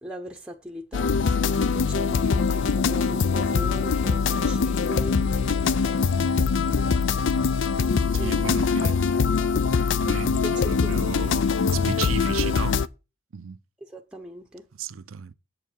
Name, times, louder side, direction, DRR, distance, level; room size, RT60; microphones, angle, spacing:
voice 1, 0.0-5.2 8.2-8.5 8.8-9.0 10.4-11.1 13.9-14.6, equal, 5° right, 0.8 m, -39 dB
sound 1, 0.9-12.9, left 5 dB, 65° left, 0.5 m, -23 dB
voice 2, 8.1-9.0 10.0-11.5 11.7-12.8 13.3-13.6 14.7-15.3, right 6 dB, 90° right, 0.6 m, -34 dB
8.1 x 4.7 x 7.2 m
head